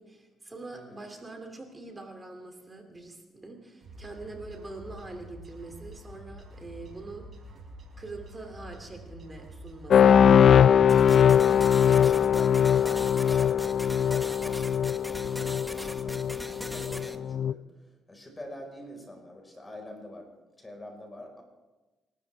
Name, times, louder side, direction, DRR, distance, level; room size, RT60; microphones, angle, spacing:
voice 1, 0.0-7.2 8.0-10.6, right 3 dB, 20° right, 4 dB, 2.7 m, -44 dB
voice 2, 0.7-1.1 11.8-20.3 20.6-21.4, left 1 dB, 20° left, 2 dB, 4.8 m, -45 dB
sound 1, 3.8-11.3, equal, 50° right, 4.6 m, -47 dB
sound 2, 9.9-17.5, left 8 dB, 60° left, 0.4 m, -21 dB
sound 3, 10.9-17.2, equal, ahead, 1.1 m, -41 dB
28.0 x 13.0 x 3.5 m, 1.1 s
cardioid pair, 90°, 0 cm